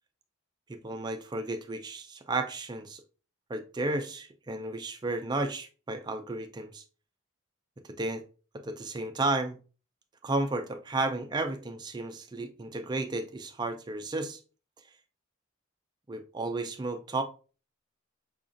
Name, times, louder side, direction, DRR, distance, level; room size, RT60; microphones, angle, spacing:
voice 1, 0.7-3.0 3.5-6.8 8.0-8.2 8.6-9.6 10.2-14.4 16.1-17.2, right 2 dB, 20° right, 0.3 m, -33 dB
5.0 x 2.4 x 2.5 m
head